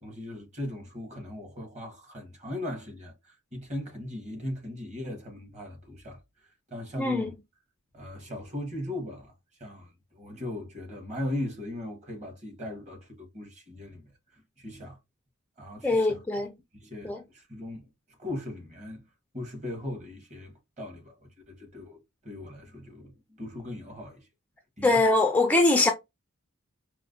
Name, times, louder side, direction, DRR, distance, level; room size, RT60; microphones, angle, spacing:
voice 1, 0.0-6.2 6.7-7.3 7.9-9.3 9.6-14.1 14.6-15.0 15.6-16.2 16.7-17.9 18.2-19.0 19.3-24.2 24.8-25.0, left 1 dB, 35° right, 1.4 m, -38 dB
voice 2, 7.0-7.3 15.8-16.5 17.0-17.2 24.8-25.9, left 2 dB, 5° left, 0.3 m, -22 dB
4.6 x 2.1 x 2.5 m
head